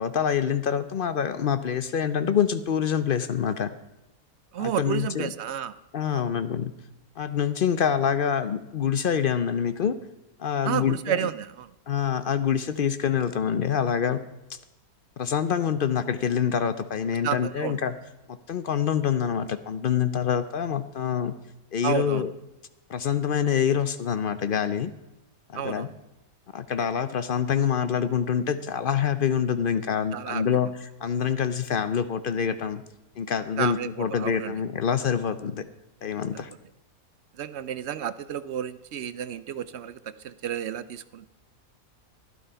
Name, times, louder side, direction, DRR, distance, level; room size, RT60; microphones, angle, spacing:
voice 1, 0.0-3.7 4.6-5.3 5.9-6.7 7.2-10.0 10.4-11.3 11.9-14.2 14.5-14.6 15.2-17.9 18.5-21.3 21.7-22.3 22.9-24.9 25.5-25.9 26.5-32.8 33.2-35.6 36.0-36.5, left 8 dB, 60° left, 12 dB, 0.5 m, -26 dB
voice 2, 4.5-5.7 6.1-6.2 10.6-11.7 17.2-17.8 21.8-22.3 25.5-25.9 30.1-30.4 33.6-34.5 37.4-40.0 40.2-41.3, right 9 dB, 65° right, 15 dB, 0.7 m, -31 dB
12.0 x 11.0 x 5.5 m, 0.95 s
omnidirectional pair, 1.6 m